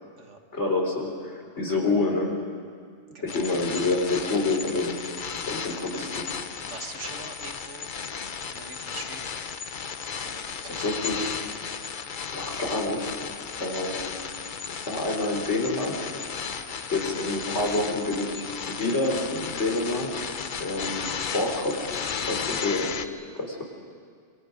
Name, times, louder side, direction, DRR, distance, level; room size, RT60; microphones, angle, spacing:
voice 1, 0.5-2.3 3.2-5.2 5.5-6.3 10.2-10.4 10.6-11.3 12.3-13.1 13.6-14.1 14.9-16.1 16.5-16.6 16.9-20.3 20.6-21.9 22.3-23.0 23.3-23.6, left 2 dB, 65° left, 0 dB, 4.0 m, -28 dB
sound 1, 3.3-23.1, left 6 dB, 45° left, 0.9 m, -34 dB
voice 2, 6.7-7.9 8.5-9.3 10.2-10.8 16.7-16.8, right 3 dB, 70° right, 4 dB, 2.0 m, -42 dB
26.5 x 24.0 x 5.3 m, 2.1 s
omnidirectional pair, 1.3 m